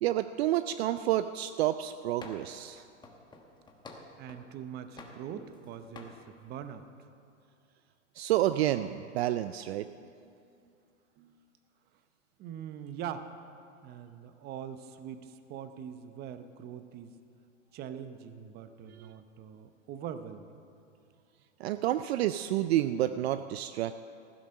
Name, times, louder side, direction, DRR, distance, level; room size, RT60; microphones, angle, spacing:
voice 1, 0.0-2.8 8.2-9.9 18.9-19.1 21.6-24.1, right 13 dB, 55° right, 12 dB, 0.5 m, -29 dB
sound 1, 2.2-2.6 3.0-4.5 5.0-5.7 6.0-6.2, left 3 dB, 10° left, 1.2 m, -49 dB
voice 2, 4.2-6.9 9.8-10.4 10.6-10.8 11.2-11.4 12.4-13.3 13.8-17.1 17.7-20.6, right 9 dB, 25° right, 10 dB, 0.7 m, -43 dB
15.5 x 10.0 x 6.4 m, 2.5 s
hypercardioid pair, 130°, 37 cm